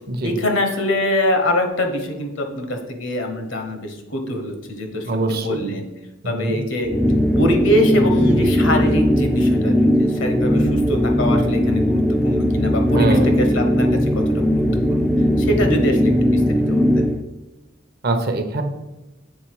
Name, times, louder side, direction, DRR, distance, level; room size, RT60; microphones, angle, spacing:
voice 1, 0.2-5.9 6.2-6.9 7.4-13.9 14.3-15.1 15.4-17.0, left 1 dB, 70° left, 4 dB, 1.1 m, -24 dB
voice 2, 5.1-5.7 6.2-6.6 12.9-13.4 18.0-18.6, right 2 dB, 50° right, 7 dB, 0.7 m, -23 dB
sound 1, 6.8-17.3, equal, ahead, 0.3 m, -18 dB
7.1 x 3.6 x 4.7 m, 0.99 s
head